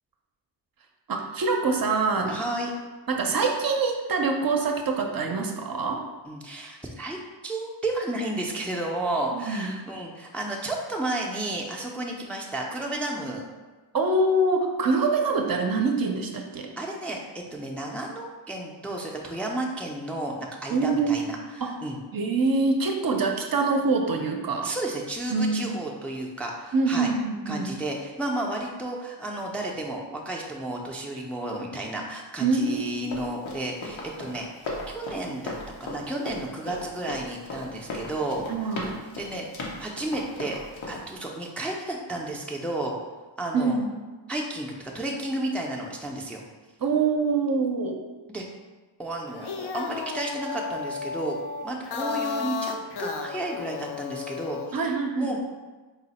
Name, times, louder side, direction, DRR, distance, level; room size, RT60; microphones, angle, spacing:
voice 1, 1.1-2.4 3.1-6.0 9.3-9.7 13.9-16.7 20.7-21.2 21.6-21.7 22.1-24.7 25.3-25.7 26.7-27.7 32.4-33.1 38.5-38.9 43.5-43.9 46.8-48.0 54.7-55.3, right 3 dB, 50° right, 2 dB, 0.5 m, -25 dB
voice 2, 2.3-2.7 6.2-7.2 7.4-13.4 16.8-17.2 17.5-22.0 24.6-27.1 27.5-35.5 35.8-38.4 39.1-40.6 40.9-42.9 43.4-43.8 44.3-46.4 48.3-48.4 49.0-51.4 51.6-54.9 55.2-55.4, right 1 dB, 5° left, -1 dB, 0.4 m, -32 dB
Run, 32.7-41.1, left 2 dB, 85° left, 0.8 m, -37 dB
sound 1, 49.3-54.8, left 6 dB, 60° left, 0.5 m, -33 dB
4.1 x 2.0 x 4.0 m, 1.3 s
cardioid pair, 60°, 46 cm